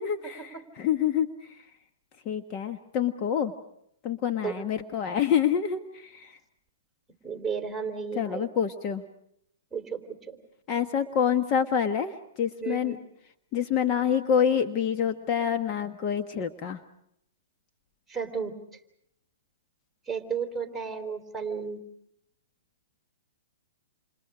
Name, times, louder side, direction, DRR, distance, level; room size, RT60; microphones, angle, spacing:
voice 1, 0.0-1.7 2.2-3.5 4.0-6.4 8.1-9.0 10.7-13.0 13.5-16.8, left 8 dB, 35° left, 7 dB, 1.4 m, -27 dB
voice 2, 7.2-8.5 9.7-10.4 12.6-13.0 18.1-18.6 20.1-21.8, right 6 dB, 5° right, 4 dB, 3.8 m, -33 dB
28.5 x 28.5 x 5.0 m, 0.75 s
hypercardioid pair, 130°, 0 cm